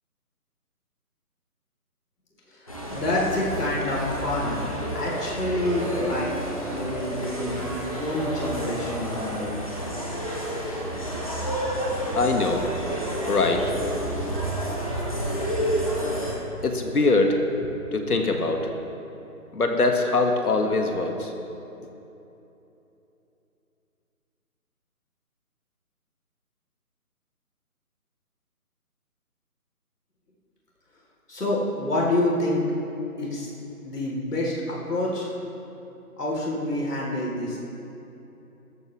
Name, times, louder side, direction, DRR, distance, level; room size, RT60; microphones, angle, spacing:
voice 1, 2.5-4.7 4.9-6.3 6.6-9.6 31.3-32.7 33.2-33.5 33.8-35.3 36.2-37.6, left 1 dB, 90° left, -3 dB, 3.4 m, -27 dB
sound 1, 2.7-16.3, right 1 dB, 25° left, 1.1 m, -30 dB
voice 2, 12.0-12.7 13.3-13.6 16.6-17.4 17.9-18.6 19.5-21.3, left 3 dB, 75° left, 3 dB, 1.8 m, -23 dB
17.5 x 13.5 x 3.2 m, 3.0 s
hypercardioid pair, 175°, 45 cm